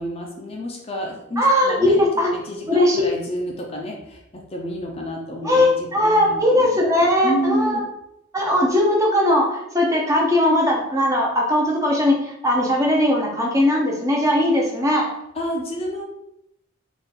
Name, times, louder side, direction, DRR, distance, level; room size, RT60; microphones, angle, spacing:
voice 1, 0.0-6.7 7.2-7.9 15.3-16.0, right 1 dB, 30° left, 0 dB, 0.5 m, -29 dB
voice 2, 1.4-2.3 2.7-3.0 5.4-7.8 8.3-15.1, left 1 dB, 15° right, -1 dB, 0.7 m, -19 dB
3.7 x 2.5 x 4.1 m, 0.80 s
head